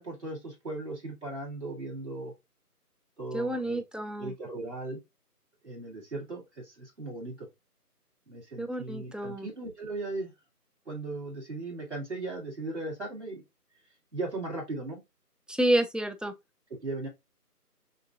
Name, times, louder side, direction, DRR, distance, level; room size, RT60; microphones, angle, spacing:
voice 1, 0.0-2.3 3.2-3.8 4.2-5.0 5.6-7.5 8.3-10.3 10.9-13.4 14.1-15.0 16.8-17.1, right 2 dB, 45° right, 2.0 m, -37 dB
voice 2, 3.3-4.3 8.6-9.5 15.5-16.3, right 1 dB, ahead, 0.3 m, -29 dB
5.8 x 2.6 x 2.5 m
figure-of-eight pair, 180°, 48 cm